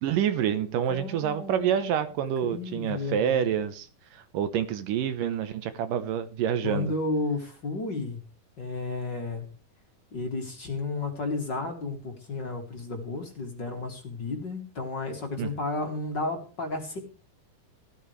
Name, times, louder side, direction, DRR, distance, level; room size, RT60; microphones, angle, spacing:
voice 1, 0.0-6.9 15.4-15.5, right 9 dB, 70° right, 11 dB, 2.5 m, -28 dB
voice 2, 0.9-1.7 2.4-3.5 6.6-8.2 8.6-9.5 10.1-17.0, left 3 dB, 35° left, 3 dB, 2.8 m, -32 dB
17.0 x 13.0 x 3.2 m, 0.33 s
omnidirectional pair, 4.1 m